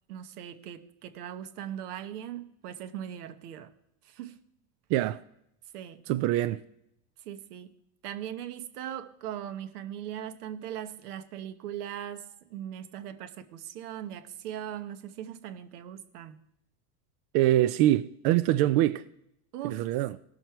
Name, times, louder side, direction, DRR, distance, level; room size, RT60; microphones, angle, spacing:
voice 1, 0.1-3.7 4.0-4.4 5.7-6.1 7.2-7.7 8.0-16.4 19.5-19.9, right 10 dB, 80° right, 1.1 m, -39 dB
voice 2, 6.1-6.6 17.3-19.0 19.6-20.2, right 14 dB, 55° right, 0.6 m, -24 dB
17.0 x 6.3 x 4.5 m
supercardioid pair, 105°, 45 cm